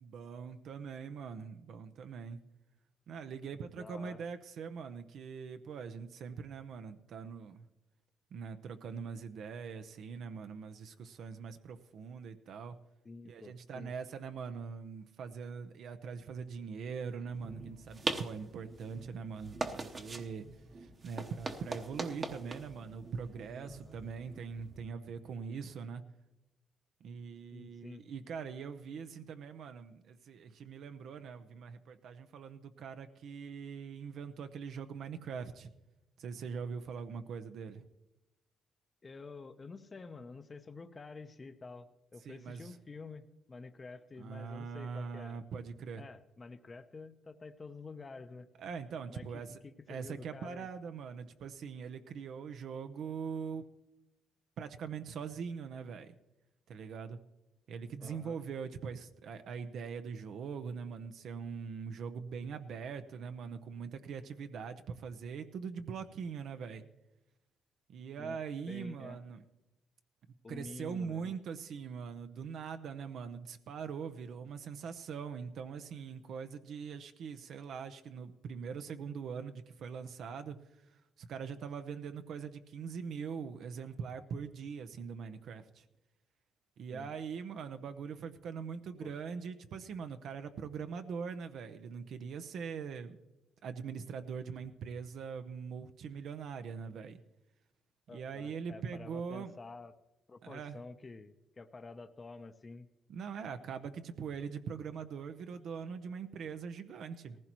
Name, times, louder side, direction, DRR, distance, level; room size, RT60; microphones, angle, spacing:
voice 1, 0.0-2.4 3.1-7.6 8.3-12.8 13.2-20.5 20.8-26.0 27.0-35.7 36.2-37.9 42.2-42.7 44.2-46.0 48.6-49.6 49.9-53.7 54.6-56.2 56.7-57.2 57.7-66.8 67.9-69.4 70.5-80.6 81.2-85.8 86.8-93.2 93.6-97.2 98.1-99.5 100.4-100.8 103.1-107.4, right 6 dB, 70° right, 8 dB, 0.7 m, -42 dB
voice 2, 3.7-4.2 13.0-13.9 23.6-24.0 27.5-28.0 39.0-45.4 46.0-48.5 49.1-50.7 58.0-58.4 68.2-68.4 68.7-69.2 70.4-71.4 86.9-87.1 89.0-89.1 98.1-99.9 100.3-102.9, left 3 dB, 30° left, 9 dB, 0.7 m, -49 dB
sound 1, 17.3-24.9, right 3 dB, 35° right, 1.0 m, -42 dB
18.0 x 15.0 x 3.0 m, 0.97 s
cardioid pair, 90°, 0 cm